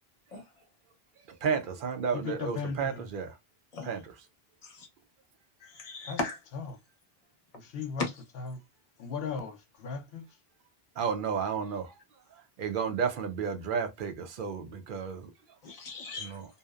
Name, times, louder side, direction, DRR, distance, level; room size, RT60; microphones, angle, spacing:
voice 1, 1.4-3.3 3.8-4.1 11.0-11.9 12.6-15.3 16.2-16.5, right 6 dB, 60° right, 0.6 m, -32 dB
voice 2, 2.1-3.1 6.1-6.2 7.5-8.0 8.4-8.6 9.0-10.2, left 5 dB, 75° left, 0.8 m, -36 dB
voice 3, 5.6-6.4 8.0-8.1 15.6-16.4, left 3 dB, 40° left, 0.8 m, -36 dB
2.7 x 2.0 x 2.3 m
omnidirectional pair, 1.0 m